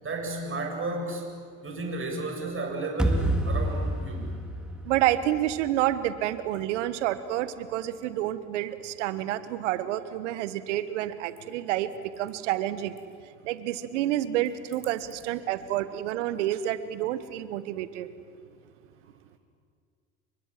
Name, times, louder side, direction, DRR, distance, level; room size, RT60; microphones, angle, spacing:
voice 1, 0.0-1.3 1.6-4.3, right 2 dB, 35° right, 2 dB, 8.0 m, -33 dB
sound 1, 3.0-6.1, right 1 dB, ahead, 3.7 m, -29 dB
voice 2, 4.8-13.0 13.4-18.1, right 13 dB, 75° right, 13 dB, 1.4 m, -29 dB
29.5 x 23.5 x 7.5 m, 2.1 s
hypercardioid pair, 60°, 36 cm